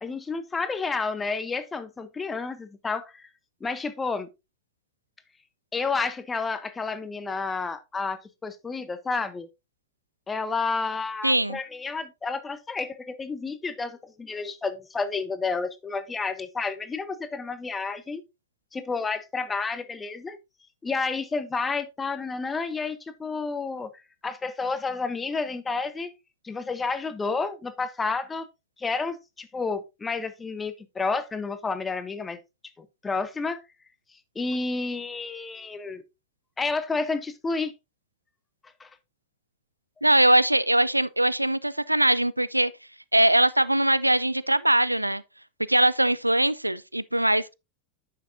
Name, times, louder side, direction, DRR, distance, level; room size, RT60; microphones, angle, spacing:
voice 1, 0.0-3.3 3.6-4.3 5.7-9.5 10.3-18.2 18.7-20.4 20.8-23.9 24.2-26.1 26.4-28.5 28.8-32.4 32.8-33.6 34.3-36.0 36.6-37.7 38.8-38.9, left 4 dB, 15° left, 0.8 m, -30 dB
voice 2, 11.2-11.6 40.0-42.7 43.1-45.2 45.7-47.5, right 1 dB, 85° right, 0.3 m, -21 dB
9.2 x 6.8 x 2.6 m
figure-of-eight pair, 90°, 0 cm